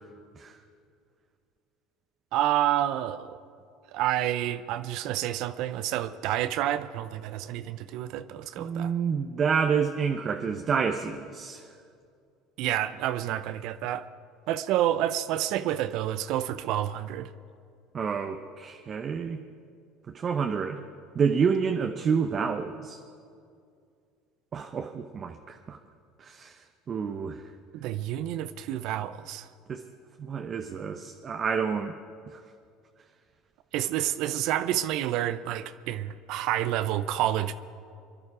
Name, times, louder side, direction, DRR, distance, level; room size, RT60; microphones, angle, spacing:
voice 1, 2.3-3.4 3.9-8.9 12.6-14.0 14.5-17.3 27.7-29.5 33.7-37.5, right 12 dB, 65° right, 12 dB, 0.5 m, -29 dB
voice 2, 8.6-11.6 17.9-19.4 20.1-20.8 21.1-23.0 24.5-25.8 26.2-26.5 26.9-27.4 29.7-29.8 30.2-31.9 32.3-32.4, right 6 dB, 40° right, 5 dB, 0.9 m, -28 dB
23.5 x 11.0 x 4.9 m, 2.4 s
hypercardioid pair, 85°, 0 cm